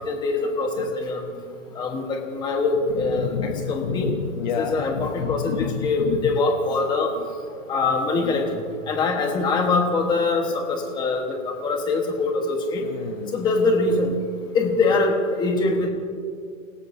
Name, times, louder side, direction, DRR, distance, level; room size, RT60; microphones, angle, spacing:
voice 1, 0.1-1.2 1.7-3.3 3.7-4.1 4.6-7.1 7.7-12.8 13.3-14.1 14.5-15.9, left 3 dB, 10° left, 2 dB, 1.2 m, -23 dB
voice 2, 2.9-6.3 12.8-13.4, left 7 dB, 35° left, 5 dB, 0.8 m, -29 dB
29.0 x 17.0 x 2.7 m, 2.3 s
hypercardioid pair, 165°, 42 cm